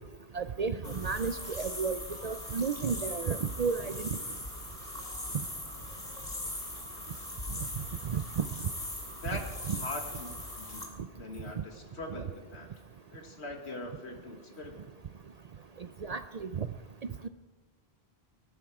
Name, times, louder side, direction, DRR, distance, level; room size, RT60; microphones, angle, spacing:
voice 1, 0.3-4.1 8.1-8.4 9.7-9.8 12.2-12.3 16.0-16.7 17.2-17.3, right 5 dB, 50° right, 11 dB, 0.5 m, -32 dB
sound 1, 0.8-10.8, left 1 dB, 45° left, 3.0 m, -40 dB
voice 2, 9.2-10.9 11.2-12.7 13.1-14.8, left 2 dB, 85° left, 3 dB, 2.2 m, -42 dB
20.0 x 12.0 x 4.8 m, 1.4 s
omnidirectional pair, 1.1 m